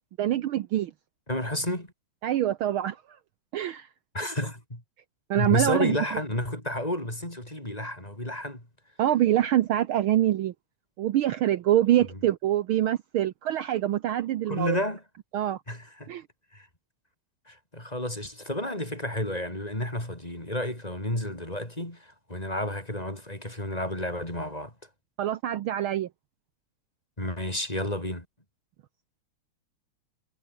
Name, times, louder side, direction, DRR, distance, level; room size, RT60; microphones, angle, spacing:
voice 1, 0.2-0.9 2.2-3.0 3.5-3.9 5.3-6.2 9.0-10.5 11.0-14.8 15.3-15.6 16.1-16.2 25.2-26.1, right 12 dB, 80° right, 1.2 m, -25 dB
voice 2, 1.3-1.9 4.1-4.8 5.4-8.6 14.5-15.0 15.7-16.1 16.5-16.7 17.5-24.7 27.2-28.3, left 1 dB, 10° left, 5.3 m, -31 dB
omnidirectional pair, 3.4 m